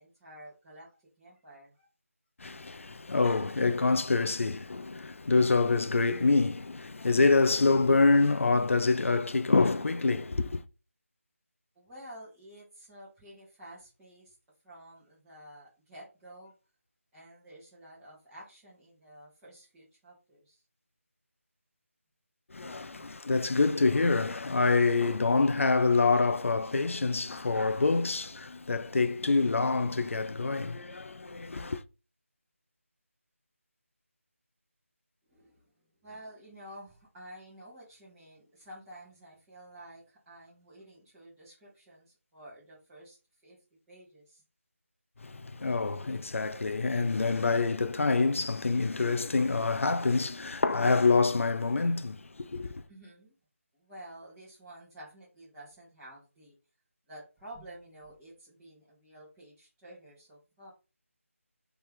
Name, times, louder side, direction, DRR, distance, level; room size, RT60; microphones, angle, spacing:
voice 1, 0.0-1.9 11.8-14.4 14.6-16.5 17.1-20.6 22.7-23.1 35.2-43.6 43.9-44.4 52.9-53.4 53.7-56.6 57.1-60.7, right 1 dB, 10° right, 1.9 m, -51 dB
voice 2, 2.4-10.6 22.5-31.8 45.2-52.8, left 3 dB, 65° left, 0.5 m, -26 dB
4.3 x 3.4 x 3.7 m
figure-of-eight pair, 165°, 8 cm